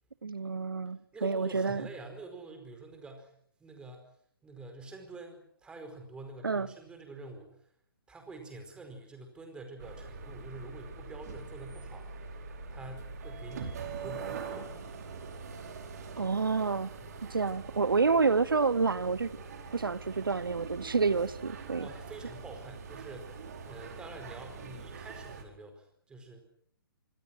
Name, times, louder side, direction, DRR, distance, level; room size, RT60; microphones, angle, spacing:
voice 1, 0.2-1.9 6.4-6.7 16.2-16.9 17.2-19.3 19.7-21.9, right 4 dB, 65° right, 19 dB, 0.9 m, -28 dB
voice 2, 1.1-3.3 3.6-4.1 4.4-7.7 8.1-12.1 12.7-14.7 17.0-17.2 21.8-23.4 23.7-26.4, right 2 dB, 5° right, 6 dB, 4.8 m, -47 dB
sound 1, 9.8-25.4, right 5 dB, 45° right, 4.6 m, -43 dB
25.5 x 25.5 x 6.1 m, 0.62 s
figure-of-eight pair, 130°, 12 cm